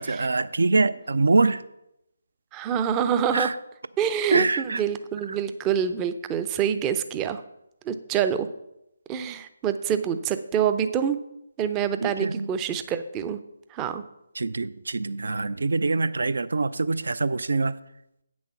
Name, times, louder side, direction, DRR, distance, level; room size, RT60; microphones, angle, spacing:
voice 1, 0.0-1.6 3.3-3.6 4.3-4.8 12.0-12.5 14.4-17.7, right 3 dB, 60° right, 0.5 m, -24 dB
voice 2, 2.5-3.5 4.0-7.4 7.9-8.5 9.1-11.2 11.6-13.4 13.7-14.0, right 8 dB, 15° right, 0.5 m, -26 dB
8.6 x 6.3 x 5.7 m
figure-of-eight pair, 145°, 0 cm